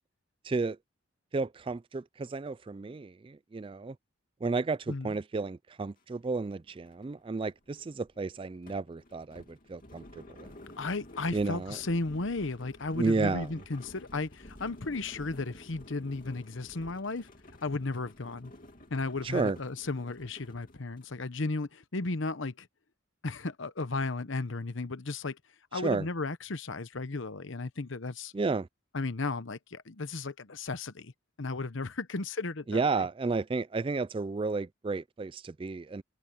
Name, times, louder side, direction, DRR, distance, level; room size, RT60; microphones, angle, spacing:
voice 1, 0.4-0.8 1.3-4.0 4.4-10.5 11.3-11.8 13.0-13.5 19.2-19.6 25.8-26.1 28.3-28.7 32.7-36.0, right 3 dB, 25° right, 0.3 m, -32 dB
sound 1, 6.0-6.1 6.4-21.2, left 1 dB, 40° left, 3.0 m, -52 dB
voice 2, 10.8-17.3 17.6-18.5 18.9-22.7 23.2-25.4 25.7-28.3 28.9-31.1 31.4-33.1, left 3 dB, 65° left, 1.0 m, -34 dB
head